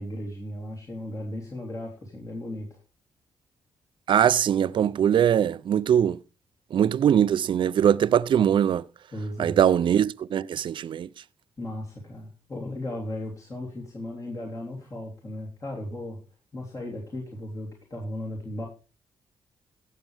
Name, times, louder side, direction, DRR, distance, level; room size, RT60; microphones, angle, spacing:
voice 1, 0.0-2.8 9.1-9.6 11.6-16.2 16.5-18.7, left 1 dB, 35° left, 3.1 m, -36 dB
voice 2, 4.1-6.2 6.7-8.8 9.4-11.1, right 9 dB, 60° right, 0.4 m, -21 dB
15.5 x 7.4 x 3.4 m
cardioid pair, 80°, 10 cm